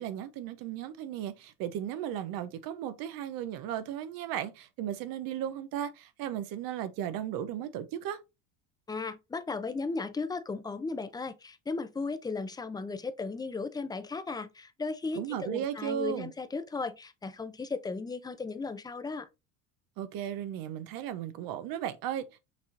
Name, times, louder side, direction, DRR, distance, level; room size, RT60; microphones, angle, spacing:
voice 1, 0.0-8.2 15.1-16.3 20.0-22.4, right 10 dB, 65° right, 0.7 m, -35 dB
voice 2, 8.9-19.3, left 4 dB, 10° left, 0.5 m, -36 dB
6.0 x 3.0 x 2.5 m
supercardioid pair, 90°, 38 cm